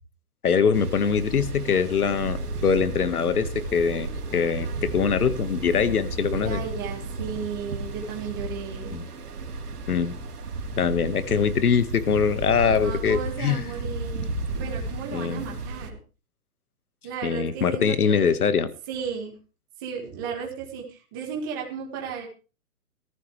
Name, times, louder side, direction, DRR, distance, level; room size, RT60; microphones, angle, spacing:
voice 1, 0.4-6.6 8.9-9.1 9.9-10.2 10.8-13.6 15.1-15.4 17.2-18.7, left 6 dB, 70° left, 13 dB, 1.6 m, -23 dB
sound 1, 0.7-15.9, right 3 dB, 80° right, 3.1 m, -33 dB
voice 2, 6.3-9.0 12.8-16.0 17.0-18.3 18.9-19.4 19.8-22.3, right 6 dB, 15° right, 0 dB, 1.8 m, -34 dB
18.0 x 14.5 x 3.3 m, 0.34 s
hypercardioid pair, 180°, 46 cm